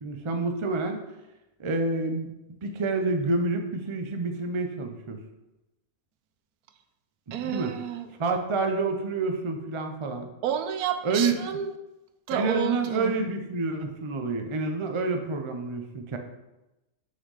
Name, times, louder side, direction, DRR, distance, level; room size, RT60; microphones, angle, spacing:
voice 1, 0.0-1.0 1.6-2.3 2.6-5.2 7.3-7.7 8.2-10.3 11.0-11.3 12.3-16.2, right 3 dB, 40° right, 5 dB, 0.4 m, -28 dB
voice 2, 7.3-8.1 10.4-11.7 12.3-13.2, right 9 dB, 85° right, 9 dB, 1.1 m, -30 dB
6.2 x 5.4 x 4.1 m, 0.98 s
omnidirectional pair, 1.6 m